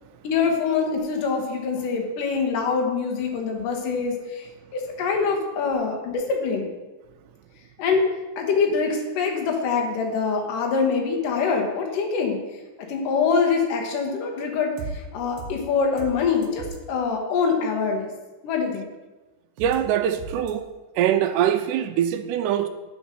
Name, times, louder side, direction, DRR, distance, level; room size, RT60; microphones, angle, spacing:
voice 1, 0.2-4.5 4.7-6.7 7.8-8.1 8.4-12.4 12.9-18.1 18.4-18.9, left 5 dB, 75° left, 2 dB, 2.7 m, -24 dB
sound 1, 14.8-15.0 15.4-15.6 16.0-16.2 16.4-16.8 19.6-19.8 20.2-20.5, right 5 dB, 65° right, 2.0 m, -35 dB
voice 2, 19.6-20.7 21.0-22.7, right 10 dB, 80° right, 8 dB, 1.8 m, -23 dB
7.9 x 5.1 x 6.7 m, 1.2 s
omnidirectional pair, 4.0 m